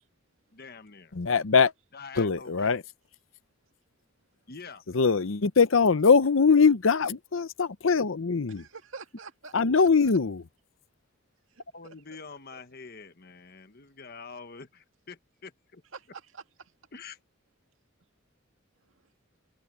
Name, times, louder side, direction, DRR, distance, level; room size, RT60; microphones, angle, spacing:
voice 1, 0.5-1.1 1.9-2.8 4.5-4.8 11.7-15.8 16.9-17.2, left 4 dB, 50° left, 1.3 m, -45 dB
voice 2, 1.1-1.7 2.2-2.8 4.9-8.6 9.5-10.4, left 5 dB, 75° left, 0.7 m, -22 dB
voice 3, 8.5-9.9 11.5-11.9 12.5-12.6 15.9-16.7 18.8-19.1, right 5 dB, 75° right, 2.0 m, -47 dB
head